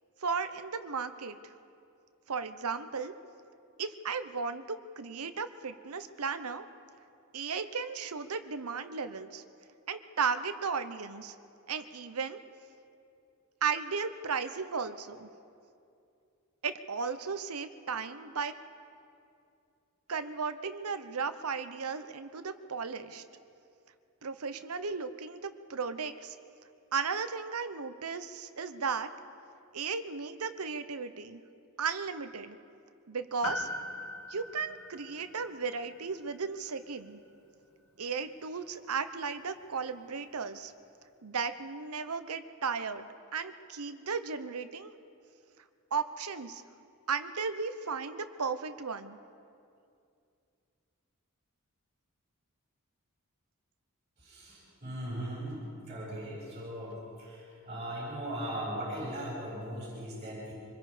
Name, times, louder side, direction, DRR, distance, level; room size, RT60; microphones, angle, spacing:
voice 1, 0.2-1.4 2.3-3.1 3.8-6.6 7.3-9.4 9.9-11.3 11.7-12.4 13.6-15.3 16.6-18.6 20.1-23.2 24.2-26.4 26.9-29.1 29.7-31.4 31.8-32.6 33.1-33.7 34.3-37.2 38.0-40.7 41.2-43.1 43.3-44.9 45.9-46.6 47.1-49.2, right 5 dB, 80° right, 10 dB, 0.9 m, -35 dB
Piano, 33.4-38.0 38.3-38.4, left 2 dB, 70° left, 1.9 m, -42 dB
voice 2, 54.2-60.5, right 1 dB, 30° right, -7 dB, 7.2 m, -39 dB
25.5 x 21.0 x 5.1 m, 2.5 s
head